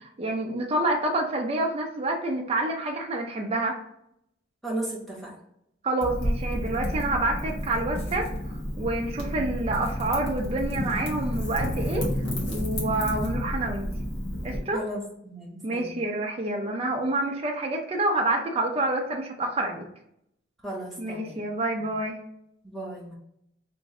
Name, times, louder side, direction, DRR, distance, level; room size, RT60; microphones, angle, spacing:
voice 1, 0.2-3.8 5.8-8.3 8.8-12.1 12.5-13.9 14.4-14.8 15.6-19.8 21.0-22.2, right 2 dB, 30° right, 1 dB, 0.4 m, -28 dB
voice 2, 4.6-5.3 14.7-15.9 20.6-21.4 22.6-23.1, right 1 dB, ahead, -4 dB, 0.9 m, -35 dB
Wind / Fire, 6.0-14.6, equal, 75° left, 1.2 m, -30 dB
3.0 x 2.5 x 3.7 m, 0.76 s
head